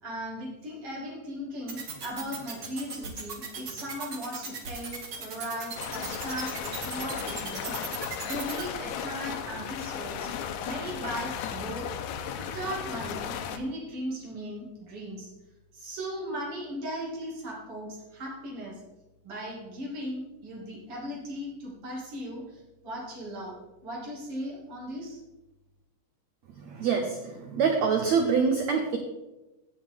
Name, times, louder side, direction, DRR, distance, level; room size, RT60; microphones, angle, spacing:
voice 1, 0.0-10.3 10.6-11.9 12.4-15.3 15.7-18.8 19.2-23.6 23.8-25.2, equal, 40° right, -3 dB, 3.0 m, -37 dB
sound 1, 1.7-8.6, right 5 dB, 60° right, 1.1 m, -37 dB
sound 2, 5.7-13.6, left 8 dB, 80° left, 1.7 m, -35 dB
voice 2, 26.7-29.0, right 5 dB, 80° right, 4 dB, 1.5 m, -25 dB
16.0 x 6.5 x 3.6 m, 1.0 s
omnidirectional pair, 4.2 m